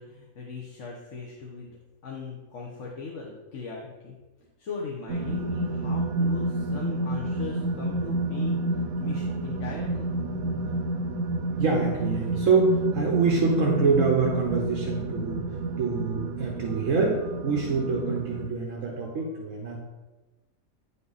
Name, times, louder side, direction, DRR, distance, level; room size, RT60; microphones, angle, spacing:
voice 1, 0.0-4.2 4.6-10.1, left 4 dB, 60° left, -3 dB, 1.3 m, -39 dB
sound 1, 5.1-18.5, right 2 dB, 85° right, 1.1 m, -29 dB
voice 2, 11.5-15.4 15.8-19.8, right 4 dB, 65° right, -1 dB, 1.4 m, -25 dB
9.4 x 5.7 x 4.1 m, 1.1 s
omnidirectional pair, 1.5 m